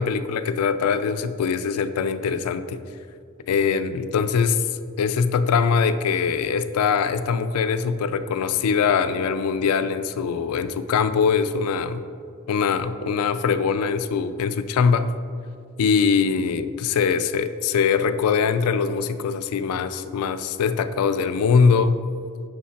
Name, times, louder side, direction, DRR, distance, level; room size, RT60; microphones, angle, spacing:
voice 1, 0.0-2.8 3.5-4.6 5.0-12.0 12.5-15.1 15.8-22.0, left 6 dB, 90° left, 13 dB, 0.3 m, -22 dB
5.7 x 5.6 x 4.1 m, 2.3 s
head